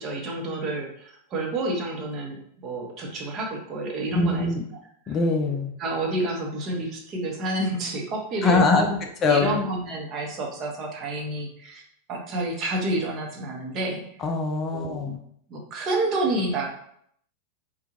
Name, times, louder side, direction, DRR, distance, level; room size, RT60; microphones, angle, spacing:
voice 1, 0.0-4.5 5.1-5.2 5.8-9.0 9.3-11.8 12.1-14.0 14.7-15.2 15.5-16.7, right 2 dB, 35° right, 0 dB, 0.9 m, -29 dB
voice 2, 4.1-4.6 5.1-5.7 8.4-8.9 9.2-9.6 14.2-15.2, left 3 dB, 25° left, 3 dB, 0.5 m, -23 dB
4.4 x 2.4 x 2.9 m, 0.67 s
figure-of-eight pair, 90°, 0 cm